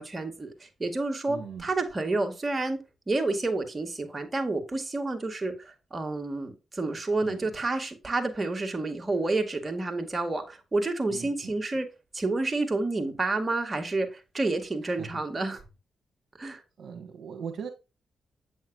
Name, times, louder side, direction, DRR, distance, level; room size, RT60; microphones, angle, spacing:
voice 1, 0.0-2.8 3.1-11.9 12.1-15.6 16.4-16.6, right 2 dB, 30° right, 2.1 m, -29 dB
voice 2, 1.3-1.7 7.2-7.4 11.1-11.5 14.8-15.2 16.8-17.7, right 6 dB, 65° right, 1.6 m, -40 dB
8.5 x 6.4 x 2.5 m
supercardioid pair, 55°, 0 cm